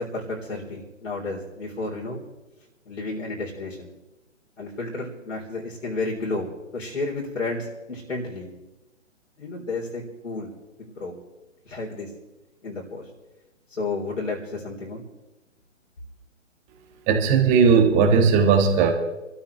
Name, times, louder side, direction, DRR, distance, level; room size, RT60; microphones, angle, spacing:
voice 1, 0.0-2.2 2.9-3.9 4.6-8.5 9.4-10.5 10.8-11.1 11.6-12.1 12.6-13.0 13.7-15.0, left 3 dB, 75° left, -4 dB, 4.0 m, -32 dB
voice 2, 17.1-18.9, right 5 dB, 20° right, 4 dB, 1.5 m, -17 dB
26.5 x 13.0 x 3.3 m, 1.0 s
figure-of-eight pair, 135°, 38 cm